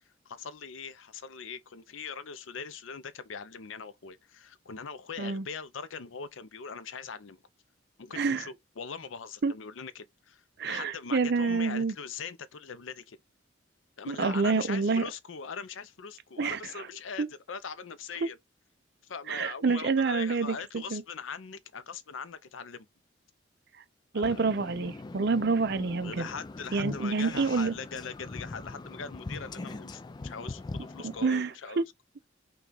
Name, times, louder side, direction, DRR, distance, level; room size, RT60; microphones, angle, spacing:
voice 1, 0.3-7.4 8.0-13.2 14.0-18.4 19.0-22.9 24.1-24.4 26.0-31.8, left 6 dB, 90° left, 0.6 m, -41 dB
voice 2, 8.1-8.5 9.4-9.5 10.6-11.9 14.1-15.0 16.4-16.6 17.2-17.3 19.3-21.0 24.1-26.3 26.7-27.7 31.0-31.8, right 4 dB, 55° right, 0.5 m, -28 dB
sound 1, 24.2-31.3, left 2 dB, 20° left, 0.3 m, -41 dB
5.7 x 2.3 x 3.9 m
head